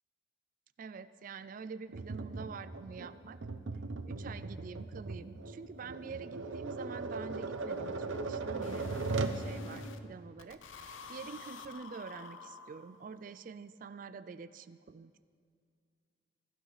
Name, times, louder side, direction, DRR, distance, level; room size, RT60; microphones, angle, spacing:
voice 1, 0.8-3.4 4.0-15.2, right 5 dB, 45° right, 12 dB, 0.3 m, -46 dB
Tap, 1.9-9.4, right 3 dB, 90° right, 0.8 m, -38 dB
sound 1, 3.1-3.2 3.6-3.7 4.0-4.1 4.4-4.5 4.8-10.0 10.4-13.2, left 2 dB, 90° left, 0.8 m, -50 dB
20.5 x 12.0 x 4.0 m, 2.2 s
head